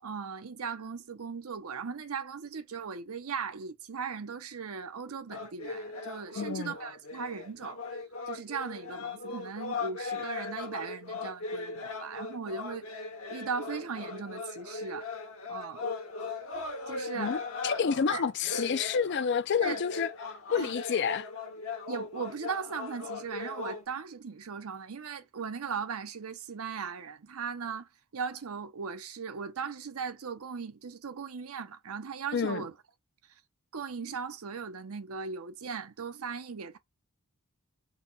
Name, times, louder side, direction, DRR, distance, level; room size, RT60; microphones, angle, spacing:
voice 1, 0.0-7.8 8.3-12.8 13.3-15.1 15.5-15.8 16.9-17.4 18.1-18.2 19.6-19.8 20.6-20.7 21.9-32.7 33.7-36.8, right 6 dB, 75° right, 0.7 m, -38 dB
sound 1, 5.3-23.8, left 4 dB, 70° left, 1.2 m, -39 dB
voice 2, 6.4-6.7 17.2-20.1 20.5-21.3 32.3-32.6, left 6 dB, 55° left, 0.4 m, -29 dB
4.1 x 2.2 x 3.9 m
head